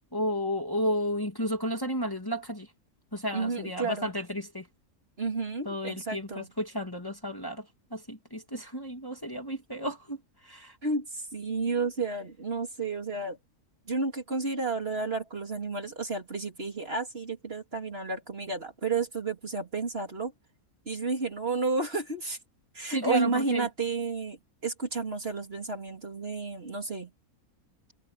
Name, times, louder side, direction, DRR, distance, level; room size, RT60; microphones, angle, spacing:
voice 1, 0.1-2.7 3.1-4.7 5.6-7.7 7.9-10.8 22.8-23.7, equal, 15° left, 2.6 m, -32 dB
voice 2, 3.3-4.1 5.2-6.5 10.8-13.4 13.9-20.3 20.9-22.4 22.7-24.4 24.6-27.1, right 3 dB, 40° right, 3.2 m, -31 dB
omnidirectional pair, 1.5 m